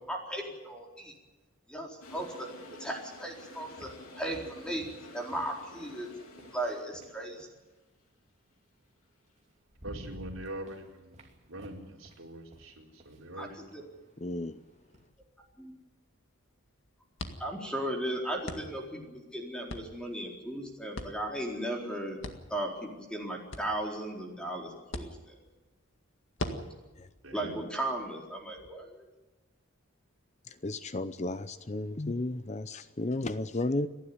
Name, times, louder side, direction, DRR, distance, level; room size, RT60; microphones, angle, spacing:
voice 1, 0.1-1.1 1.7-2.5 2.8-3.9 4.1-4.9 5.1-6.1 6.5-7.5 13.4-13.8 15.6-15.7 17.4-22.2 22.5-25.4 26.5-26.7 27.3-29.1, right 1 dB, 5° left, 0 dB, 4.2 m, -36 dB
Toilet flush, 2.0-7.2, left 2 dB, 85° left, 3.3 m, -50 dB
sound 1, 3.1-7.7 8.9-9.0 9.4-15.1, equal, 30° right, 2.9 m, -53 dB
voice 2, 9.8-11.2 11.5-13.8 27.2-27.5, right 1 dB, 65° right, 0 dB, 4.5 m, -43 dB
voice 3, 14.2-14.6 30.6-33.9, left 2 dB, 30° left, 12 dB, 0.6 m, -33 dB
sound 2, 14.5-28.7, left 1 dB, 60° left, 2.0 m, -46 dB
29.5 x 11.5 x 9.7 m, 1.1 s
head